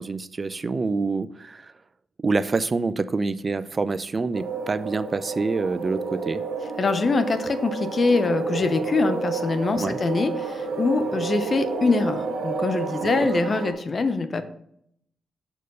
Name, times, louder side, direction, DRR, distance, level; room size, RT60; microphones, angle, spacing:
voice 1, 0.0-1.7 2.2-6.4 8.5-8.6 9.8-10.0, right 3 dB, 40° right, 15 dB, 0.4 m, -26 dB
sound 1, 4.3-13.7, right 4 dB, 80° right, 1.0 m, -30 dB
voice 2, 6.8-14.4, left 3 dB, 45° left, 11 dB, 0.7 m, -24 dB
6.3 x 4.5 x 5.3 m, 0.71 s
supercardioid pair, 50°, 0 cm